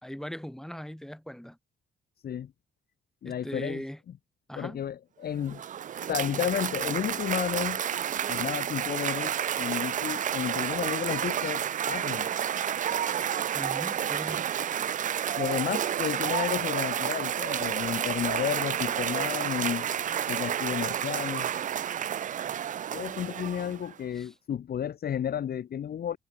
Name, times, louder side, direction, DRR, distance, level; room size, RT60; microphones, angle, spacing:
voice 1, 0.0-1.6 3.3-4.0 4.5-4.8 13.5-14.5 24.2-24.3, equal, ahead, 5.3 m, -39 dB
voice 2, 3.2-3.8 4.6-5.6 6.1-7.8 8.3-12.3 15.4-19.9 20.3-21.5 22.9-26.2, left 9 dB, 50° left, 0.9 m, -32 dB
Cheering / Applause, 5.3-23.9, right 9 dB, 40° right, 0.4 m, -30 dB
cardioid pair, 90°, 20 cm